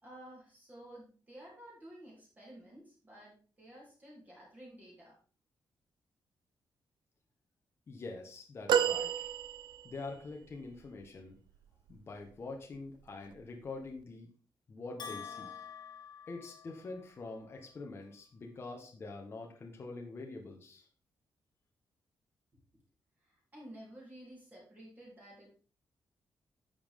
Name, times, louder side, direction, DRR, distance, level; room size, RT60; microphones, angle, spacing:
voice 1, 0.0-5.2 23.2-25.5, right 1 dB, 20° right, -5 dB, 3.7 m, -53 dB
voice 2, 7.9-9.3 9.8-11.3 11.9-14.3 14.7-15.6 16.3-20.9, left 3 dB, 30° left, 1 dB, 1.3 m, -45 dB
sound 1, 8.7-10.1 10.8-10.9, right 8 dB, 90° right, 0.5 m, -30 dB
Bell, 15.0-17.1, left 7 dB, 70° left, 2.1 m, -47 dB
10.5 x 7.3 x 3.7 m, 0.39 s
wide cardioid pair, 180°, 8 cm